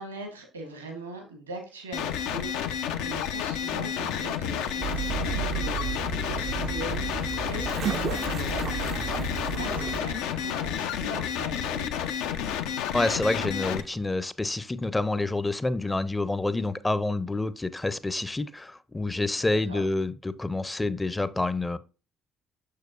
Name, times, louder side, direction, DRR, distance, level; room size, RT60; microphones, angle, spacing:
voice 1, 0.0-12.0 19.4-19.8, right 1 dB, 90° right, 1.2 m, -41 dB
sound 1, 1.9-13.8, left 8 dB, 70° left, 0.5 m, -30 dB
sound 2, 4.8-10.0, right 9 dB, 55° right, 0.3 m, -33 dB
voice 2, 12.9-21.8, left 2 dB, 15° left, 0.6 m, -28 dB
6.5 x 6.4 x 2.4 m
hypercardioid pair, 50°, 0 cm